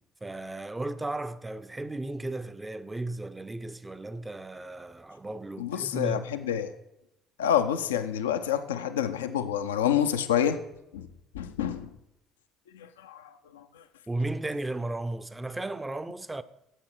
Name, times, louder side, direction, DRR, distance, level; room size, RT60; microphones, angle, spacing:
voice 1, 0.2-6.3 14.1-16.4, right 2 dB, 15° right, 0.5 m, -35 dB
voice 2, 5.6-6.7 7.4-10.6 10.9-11.1 11.3-11.9 12.7-13.6, left 9 dB, 80° left, 0.5 m, -28 dB
9.9 x 7.7 x 4.5 m
figure-of-eight pair, 55°, 0 cm